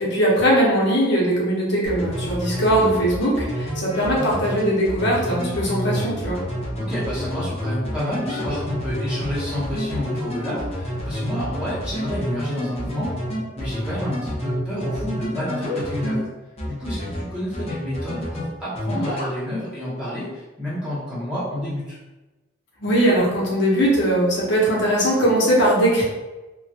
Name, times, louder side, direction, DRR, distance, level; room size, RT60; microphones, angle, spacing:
voice 1, 0.0-6.4 22.8-26.0, right 1 dB, 60° left, -5 dB, 0.9 m, -20 dB
sound 1, 1.8-16.2 16.6-17.2 17.5-18.4 18.7-19.3, equal, 30° left, 0.7 m, -29 dB
voice 2, 6.7-13.2 13.5-16.3 16.7-22.0, left 1 dB, 5° right, -11 dB, 0.9 m, -29 dB
3.0 x 2.2 x 2.8 m, 1.1 s
head